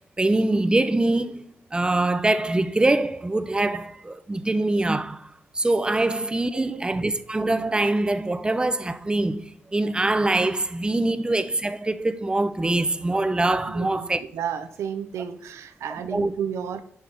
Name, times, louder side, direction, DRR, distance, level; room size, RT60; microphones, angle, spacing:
voice 1, 0.2-1.4 1.7-5.3 5.6-14.2 16.1-16.3, right 2 dB, 20° right, 0.6 m, -23 dB
voice 2, 6.5-6.8 13.7-16.8, right 8 dB, 80° right, 0.6 m, -32 dB
8.4 x 5.5 x 3.4 m
cardioid pair, 65°, 5 cm